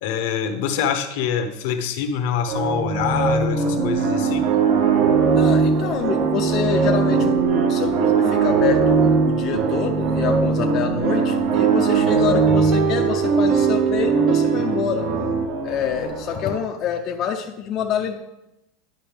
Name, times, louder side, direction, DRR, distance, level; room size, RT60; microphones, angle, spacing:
voice 1, 0.0-4.5, left 7 dB, 65° left, 7 dB, 0.9 m, -25 dB
sound 1, 2.5-16.5, right 4 dB, 65° right, 2.0 m, -22 dB
sound 2, 3.8-15.5, right 7 dB, 40° right, 0.7 m, -23 dB
voice 2, 5.3-15.1 15.6-18.2, left 8 dB, 35° left, 2 dB, 0.6 m, -26 dB
10.5 x 5.5 x 3.4 m, 0.90 s
supercardioid pair, 150°, 0 cm